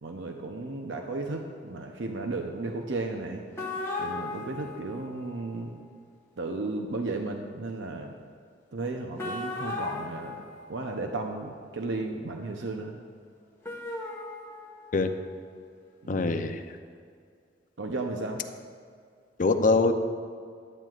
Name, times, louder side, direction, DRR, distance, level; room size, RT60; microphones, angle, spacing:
voice 1, 0.0-3.4 4.0-5.8 6.4-8.1 8.7-10.4 10.7-13.0 16.0-16.4 17.8-18.4, right 2 dB, 85° right, 3 dB, 0.8 m, -34 dB
sound 1, 3.5-5.5 9.2-11.3 13.6-15.2, left 2 dB, 15° left, 1.6 m, -37 dB
voice 2, 16.1-16.6 19.4-19.9, left 3 dB, 45° left, 7 dB, 0.6 m, -23 dB
15.5 x 11.0 x 2.5 m, 2.2 s
head